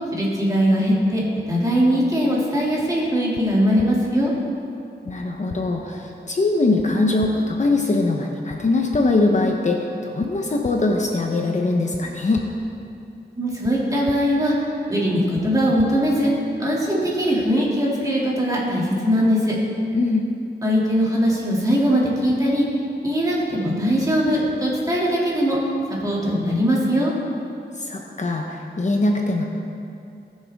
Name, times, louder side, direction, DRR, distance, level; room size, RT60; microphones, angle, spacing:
voice 1, 0.1-4.3 13.3-16.3 16.6-19.6 20.6-22.7 23.0-25.6 26.0-27.1, equal, 20° right, -5 dB, 2.4 m, -20 dB
sound 1, 3.3-3.4 3.8-3.9 5.1-5.2 5.5-5.6 6.8-6.9 7.2-7.3 8.5-8.6 8.9-9.0 10.2-10.3 10.6-10.7 11.9-12.0 12.3-12.4 13.6-13.7 14.1-14.2 15.3-15.4 15.8-15.9, left 7 dB, 75° left, 0.7 m, -36 dB
voice 2, 5.0-12.5 19.9-20.3 27.8-29.4, left 2 dB, 40° left, 1 dB, 0.9 m, -22 dB
18.5 x 6.4 x 3.5 m, 2.6 s
wide cardioid pair, 115°, 18 cm